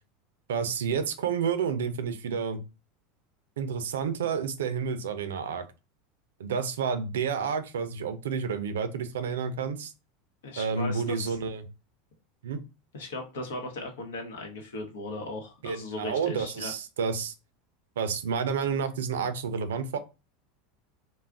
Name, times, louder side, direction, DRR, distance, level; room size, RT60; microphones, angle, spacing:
voice 1, 0.5-2.6 3.6-5.6 6.4-9.9 10.6-11.6 12.4-12.6 15.6-17.3 18.0-20.0, right 6 dB, 90° right, 10 dB, 0.4 m, -30 dB
voice 2, 10.4-11.3 12.9-16.7, left 2 dB, 85° left, 3 dB, 0.8 m, -37 dB
2.3 x 2.0 x 3.4 m, 0.29 s
supercardioid pair, 110°, 0 cm